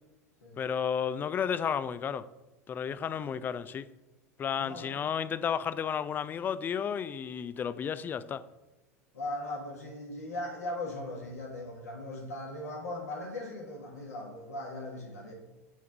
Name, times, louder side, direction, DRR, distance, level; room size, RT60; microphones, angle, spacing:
voice 1, 0.6-2.3 2.7-3.9 4.4-8.5, left 7 dB, 25° left, 0.3 m, -32 dB
voice 2, 4.6-5.0 9.1-15.3, left 1 dB, 70° left, 1.4 m, -39 dB
7.1 x 3.6 x 5.8 m
figure-of-eight pair, 80°, 8 cm